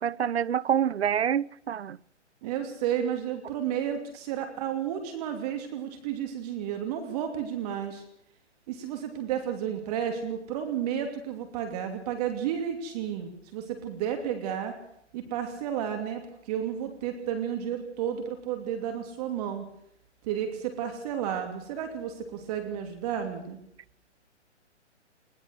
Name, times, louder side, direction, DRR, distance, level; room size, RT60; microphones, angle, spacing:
voice 1, 0.0-2.0, right 9 dB, 60° right, 0.7 m, -27 dB
voice 2, 2.4-8.0 8.7-14.7 15.1-19.6 20.2-23.6, right 9 dB, 30° right, 2.9 m, -32 dB
21.0 x 20.0 x 6.5 m
figure-of-eight pair, 135°, 36 cm